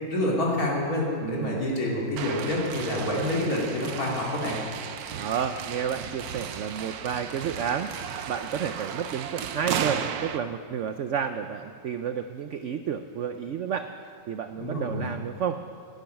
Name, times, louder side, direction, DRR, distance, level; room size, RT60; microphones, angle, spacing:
voice 1, 0.1-4.6 14.6-15.1, left 1 dB, 55° left, -3 dB, 3.1 m, -27 dB
voice 2, 1.2-1.6 5.2-7.9 8.3-13.9 14.3-15.6, right 7 dB, 80° right, 8 dB, 0.6 m, -31 dB
sound 1, 2.2-10.4, right 8 dB, 65° right, 1.1 m, -35 dB
12.0 x 9.4 x 9.0 m, 2.3 s
omnidirectional pair, 1.9 m